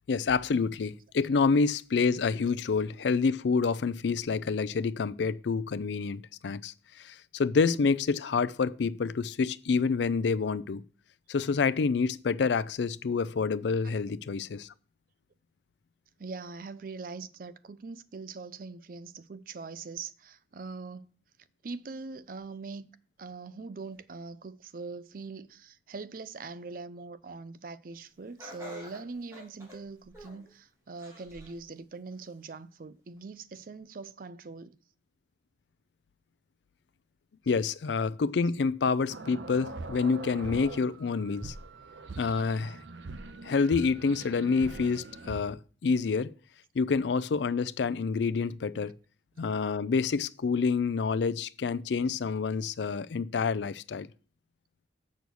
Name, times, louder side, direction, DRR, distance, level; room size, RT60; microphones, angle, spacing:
voice 1, 0.1-10.8 11.3-14.7 37.5-41.5 42.2-42.8 43.4-46.3 46.8-48.9 49.4-54.1, left 5 dB, 75° left, 0.4 m, -28 dB
voice 2, 16.2-21.1 21.6-22.9 23.2-34.8, right 4 dB, 50° right, 0.4 m, -42 dB
Laughter, 28.4-30.5 31.0-31.6 32.1-32.2 33.2-33.3, left 1 dB, 15° right, 3.3 m, -48 dB
sound 1, 39.1-45.4, right 3 dB, 85° right, 0.7 m, -42 dB
6.9 x 6.3 x 6.2 m
head